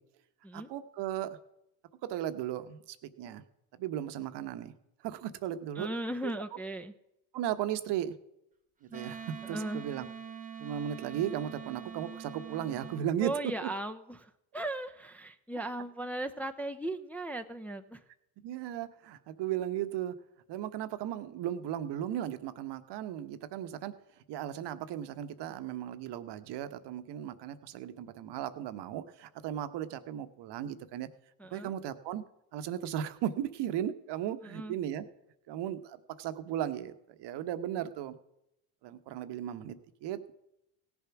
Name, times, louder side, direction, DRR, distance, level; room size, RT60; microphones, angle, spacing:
voice 1, 0.5-1.4 2.0-3.4 3.8-4.7 5.0-5.9 6.2-6.3 7.3-8.1 8.9-10.1 10.6-13.3 18.4-20.1 20.5-23.9 24.3-31.1 31.5-32.2 32.5-35.0 35.5-38.1 38.8-39.8 40.0-40.3, right 11 dB, 55° right, 11 dB, 1.0 m, -36 dB
voice 2, 5.8-6.9 9.5-9.9 13.2-18.0 31.4-31.7 34.4-34.7, right 1 dB, 5° left, 5 dB, 0.6 m, -37 dB
Wind instrument woodwind instrument, 8.9-13.1, right 6 dB, 15° right, 1.2 m, -44 dB
17.0 x 7.1 x 5.9 m, 0.84 s
supercardioid pair, 90°, 48 cm